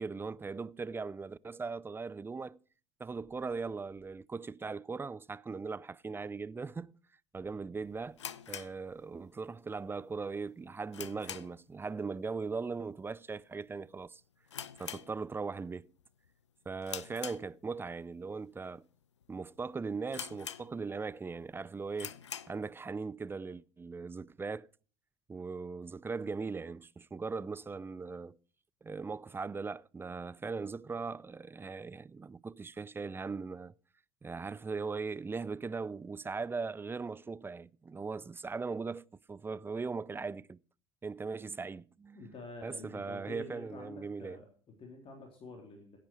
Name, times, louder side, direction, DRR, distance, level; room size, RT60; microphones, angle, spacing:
voice 1, 0.0-2.6 3.0-6.9 7.3-8.2 8.5-14.2 14.8-15.9 16.7-18.8 19.3-22.1 22.5-24.7 25.3-28.4 28.8-33.7 34.2-40.6 41.0-42.3 42.6-44.4, right 4 dB, 15° right, 0.5 m, -39 dB
sound 1, 8.1-9.5 9.8-9.9 10.4-11.8 12.0-12.3 12.6-12.7 13.4-13.7 14.0-14.1 14.5-15.6 16.0-16.3 16.8-17.9 18.5-18.6 19.2-19.3 19.6-19.7 20.1-21.1 21.4-21.5 21.9-22.6, left 9 dB, 85° left, 0.6 m, -44 dB
voice 2, 42.1-46.0, left 2 dB, 40° left, 3.7 m, -48 dB
16.0 x 8.9 x 4.7 m
figure-of-eight pair, 70°, 15 cm